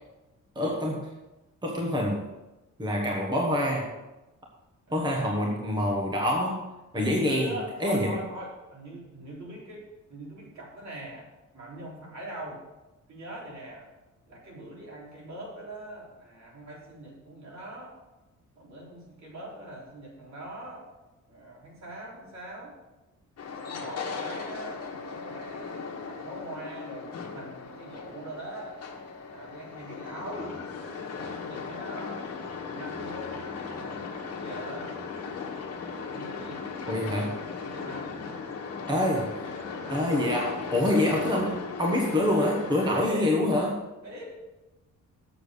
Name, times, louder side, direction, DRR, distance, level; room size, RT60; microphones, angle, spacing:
voice 1, 0.5-1.1 1.6-2.2 2.8-3.9 4.9-6.7 6.9-7.5 7.8-8.2 36.9-37.4 38.9-39.5 39.9-43.7, left 1 dB, 15° right, -1 dB, 1.3 m, -26 dB
voice 2, 4.9-5.4 6.9-11.3 11.5-12.6 13.1-13.9 14.3-17.9 18.6-20.8 21.3-22.7 23.6-28.8 29.3-30.6 30.8-32.3 32.6-35.0 36.1-37.3 37.6-38.9 39.4-40.2 43.0-43.4 44.0-44.3, right 1 dB, 60° right, -4 dB, 4.0 m, -42 dB
sound 1, 23.4-43.1, left 5 dB, 50° left, 1.4 m, -37 dB
7.1 x 7.1 x 6.6 m, 1.0 s
wide cardioid pair, 170°, 31 cm